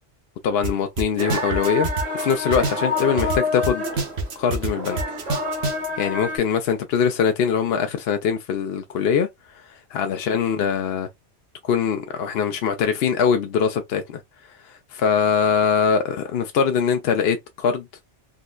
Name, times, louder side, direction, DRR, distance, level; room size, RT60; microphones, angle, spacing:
voice 1, 0.4-1.9 2.1-4.0 4.4-5.0 6.0-11.1 11.6-14.2 14.5-17.9, left 7 dB, 65° left, 0.8 m, -22 dB
sound 1, 0.6-0.7 1.0-3.4 3.6-5.9, right 3 dB, 65° right, 1.1 m, -26 dB
sound 2, 1.2-6.4, left 2 dB, 40° right, 0.9 m, -28 dB
3.8 x 2.1 x 2.3 m
omnidirectional pair, 1.2 m